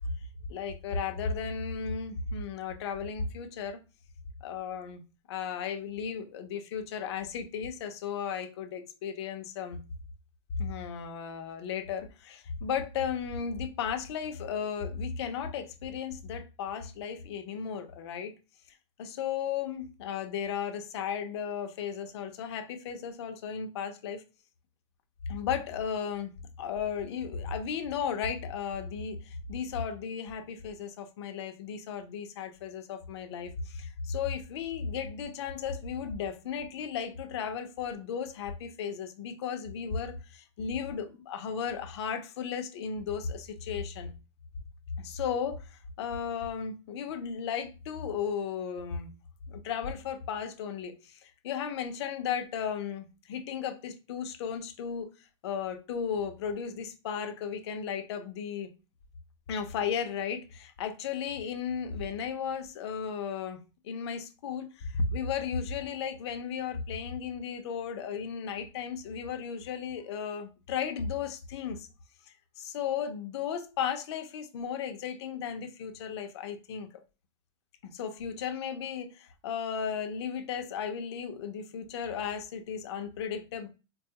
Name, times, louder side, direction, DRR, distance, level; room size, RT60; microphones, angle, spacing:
voice 1, 0.5-3.8 4.4-5.0 5.3-9.8 10.6-18.3 19.0-24.2 25.3-44.1 45.0-49.1 49.5-55.1 55.4-58.7 59.5-71.9 72.6-76.9 77.8-83.7, left 7 dB, 60° left, 0.6 m, -35 dB
3.8 x 2.3 x 2.8 m
supercardioid pair, 160°, 16 cm